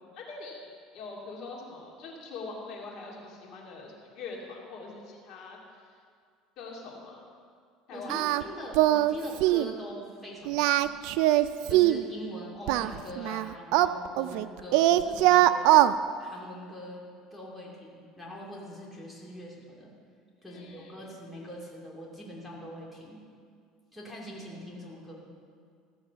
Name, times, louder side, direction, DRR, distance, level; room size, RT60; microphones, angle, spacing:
voice 1, 0.1-0.6 0.9-5.6 6.6-7.2 7.9-8.4 20.5-21.1, left 3 dB, 55° left, -2 dB, 2.6 m, -43 dB
voice 2, 7.9-10.9 11.7-15.8 16.2-17.0 17.3-19.9 20.4-23.2 23.9-25.3, equal, 10° left, -4 dB, 2.4 m, -43 dB
Singing, 8.1-8.4 8.7-9.1 9.4-9.7 10.5-12.0 12.7-14.5 14.7-15.9, right 15 dB, 70° right, 0.4 m, -22 dB
15.0 x 7.1 x 6.8 m, 2.2 s
cardioid pair, 130°, 0 cm